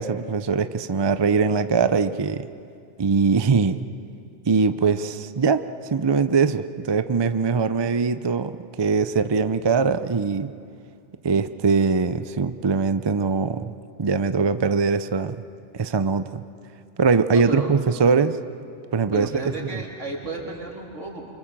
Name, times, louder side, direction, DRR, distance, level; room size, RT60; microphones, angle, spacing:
voice 1, 0.0-2.5 3.0-3.8 4.5-10.5 11.2-13.7 14.0-15.4 15.7-16.4 17.0-18.3 18.9-19.8, right 5 dB, 30° right, 11 dB, 0.5 m, -22 dB
voice 2, 17.3-17.7 19.1-21.3, right 2 dB, 80° right, -2 dB, 3.9 m, -32 dB
27.0 x 25.0 x 7.4 m, 2.4 s
omnidirectional pair, 1.2 m